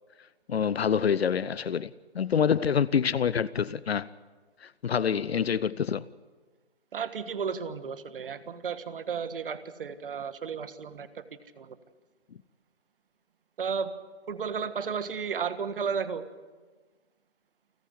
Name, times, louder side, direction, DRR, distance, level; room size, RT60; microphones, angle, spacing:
voice 1, 0.5-4.1 4.6-6.0, left 7 dB, 70° left, 0.7 m, -26 dB
voice 2, 6.9-11.2 11.6-11.8 13.6-13.9 14.3-16.2, right 6 dB, 55° right, 1.5 m, -33 dB
29.0 x 10.0 x 9.7 m
figure-of-eight pair, 145°, 32 cm